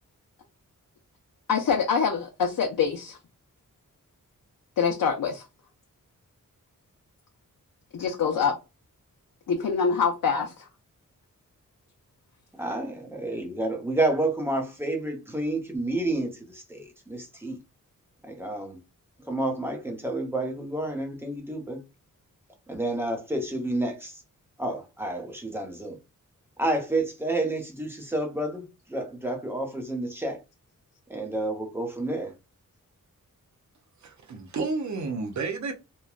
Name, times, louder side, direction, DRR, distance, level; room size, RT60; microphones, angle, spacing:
voice 1, 1.5-3.2 4.8-5.4 7.9-8.5 9.5-10.5, left 6 dB, 75° left, 0.6 m, -25 dB
voice 2, 12.6-17.6 18.2-18.8 19.2-21.8 22.7-24.2 24.6-26.0 26.6-30.4 31.1-32.3, right 2 dB, 5° right, 0.7 m, -30 dB
voice 3, 34.0-35.7, right 4 dB, 60° right, 0.7 m, -31 dB
3.0 x 2.2 x 2.3 m
wide cardioid pair, 95°, 33 cm